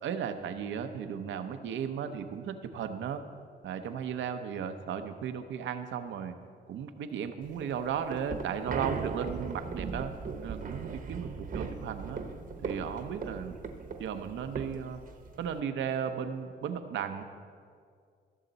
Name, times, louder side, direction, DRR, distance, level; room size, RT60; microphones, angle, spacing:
voice 1, 0.0-3.2 3.6-6.3 6.7-10.1 10.4-12.2 12.6-13.6 14.0-15.0 15.4-17.2, right 8 dB, 70° right, 8 dB, 0.8 m, -35 dB
sound 1, 7.5-15.6, right 5 dB, 45° right, 1.0 m, -38 dB
16.0 x 6.6 x 4.0 m, 2.2 s
cardioid pair, 90°, 20 cm